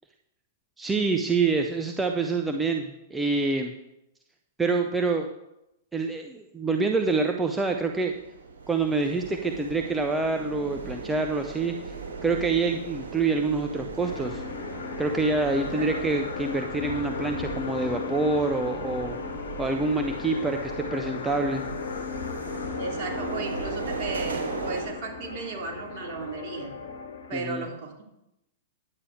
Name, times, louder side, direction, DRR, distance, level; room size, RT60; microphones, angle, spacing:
voice 1, 0.8-3.7 4.6-5.3 5.9-8.1 8.7-11.9 12.2-14.4 15.0-19.2 19.6-21.6 27.3-27.6, right 3 dB, 10° right, 4 dB, 0.9 m, -26 dB
sound 1, 7.6-24.8, right 4 dB, 70° right, 2.6 m, -38 dB
sound 2, 14.0-27.3, left 6 dB, 70° left, 1.5 m, -36 dB
voice 2, 15.7-16.0 22.8-26.8 27.3-28.0, right 3 dB, 45° right, 1 dB, 2.9 m, -35 dB
11.0 x 8.6 x 4.7 m, 0.86 s
figure-of-eight pair, 105°, 0 cm